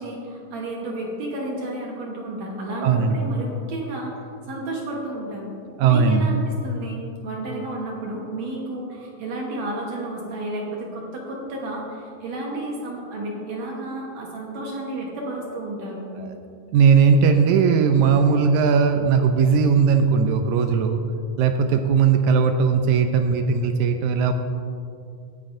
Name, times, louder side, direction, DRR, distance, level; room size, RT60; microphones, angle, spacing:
voice 1, 0.0-4.1 4.5-5.5 5.8-16.2, right 1 dB, 60° right, -2 dB, 2.2 m, -32 dB
voice 2, 2.8-3.2 5.8-6.3 16.2-16.3 16.7-21.0 21.4-24.3, right 6 dB, 80° right, 6 dB, 1.8 m, -18 dB
18.0 x 9.8 x 2.6 m, 2.5 s
omnidirectional pair, 3.8 m